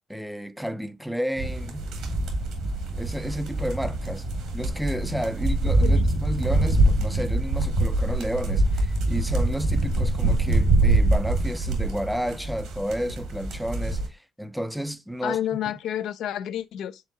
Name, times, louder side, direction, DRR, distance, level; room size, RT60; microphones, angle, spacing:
voice 1, 0.1-1.9 3.0-4.3 4.5-15.4, equal, ahead, 0.3 m, -31 dB
sound 1, 1.4-14.1, right 2 dB, 80° right, 1.2 m, -24 dB
voice 2, 15.2-17.0, left 11 dB, 80° left, 0.3 m, -30 dB
4.6 x 3.6 x 2.5 m
cardioid pair, 90°, 0 cm